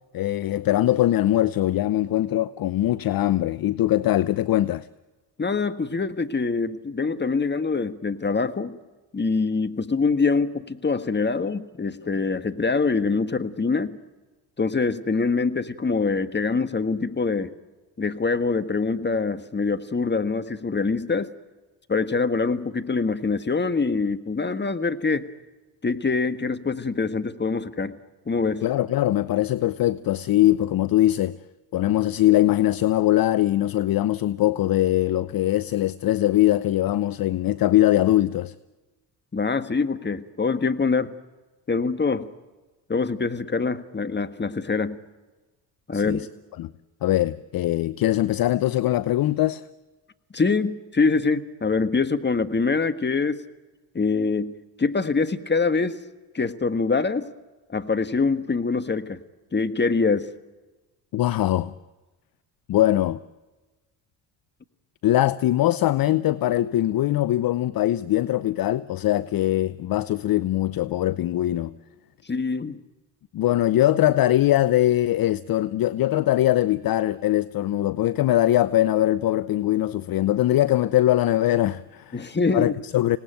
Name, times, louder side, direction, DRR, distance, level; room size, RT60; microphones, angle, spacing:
voice 1, 0.1-4.9 28.6-31.4 31.7-38.5 45.9-46.3 46.6-46.7 47.0-49.6 61.1-61.7 62.7-63.2 65.0-71.7 73.3-83.2, left 14 dB, 45° left, 0.7 m, -22 dB
voice 2, 5.4-8.8 9.1-14.0 14.6-17.5 18.0-21.3 21.9-25.3 25.8-27.9 28.3-28.6 39.3-41.1 41.7-42.3 42.9-45.0 45.9-46.3 50.3-53.4 53.9-54.5 54.8-56.0 56.3-57.3 57.7-59.2 59.5-60.3 72.3-72.8 82.1-82.7, left 4 dB, 20° left, 1.6 m, -24 dB
26.0 x 18.5 x 9.1 m
hypercardioid pair, 55°, 49 cm